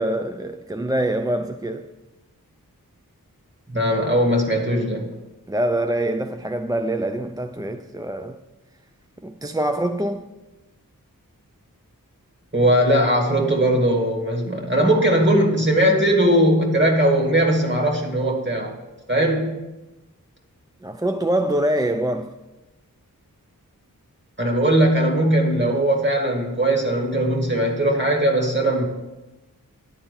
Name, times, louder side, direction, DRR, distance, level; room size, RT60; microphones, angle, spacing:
voice 1, 0.0-1.9 5.5-8.4 9.2-10.3 20.8-22.4, right 1 dB, 10° right, 0.3 m, -24 dB
voice 2, 3.7-5.1 12.5-18.7 19.1-19.5 24.4-28.8, right 1 dB, 30° right, 2.0 m, -19 dB
10.0 x 4.3 x 6.8 m
wide cardioid pair, 55°, 35 cm